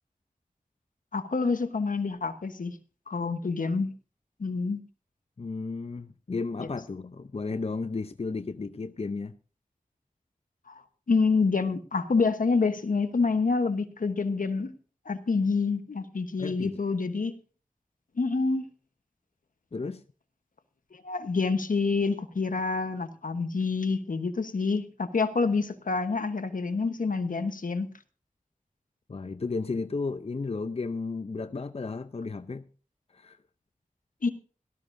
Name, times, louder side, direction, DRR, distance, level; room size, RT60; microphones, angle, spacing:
voice 1, 1.1-2.7 3.1-3.9 4.4-4.8 6.6-6.7 10.7-10.8 11.1-14.7 15.1-17.3 18.2-18.7 20.9-27.9 34.2-34.3, left 4 dB, 80° left, 1.1 m, -27 dB
voice 2, 5.4-9.4 16.4-16.8 19.7-20.0 29.1-32.7 33.1-33.4, left 4 dB, 50° left, 0.6 m, -33 dB
17.5 x 13.0 x 2.6 m
wide cardioid pair, 50°, 14 cm